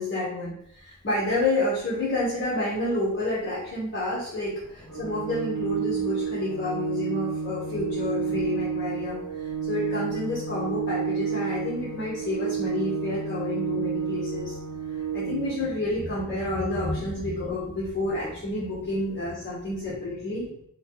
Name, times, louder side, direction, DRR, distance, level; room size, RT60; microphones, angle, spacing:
voice 1, 0.0-14.6 14.9-20.5, left 2 dB, 40° left, -8 dB, 0.8 m, -29 dB
Thunder, 0.6-20.0, left 1 dB, 15° left, 0.4 m, -44 dB
Organ, 4.9-15.8, right 6 dB, 75° right, 0.7 m, -31 dB
3.0 x 2.2 x 2.8 m, 0.71 s
wide cardioid pair, 145°, 32 cm